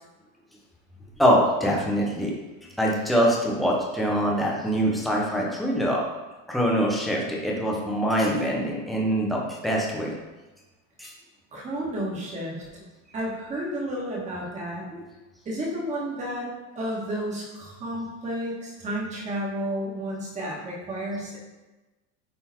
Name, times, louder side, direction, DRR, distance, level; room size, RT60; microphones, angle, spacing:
voice 1, 1.2-2.3 2.8-6.0 6.5-10.1 11.0-11.1 14.9-15.0, equal, ahead, -3 dB, 0.3 m, -24 dB
voice 2, 11.5-12.8 13.1-14.8 15.4-16.5 16.7-21.4, right 1 dB, 15° right, -3 dB, 1.5 m, -31 dB
9.0 x 3.8 x 4.2 m, 1.1 s
cardioid pair, 180°, 40 cm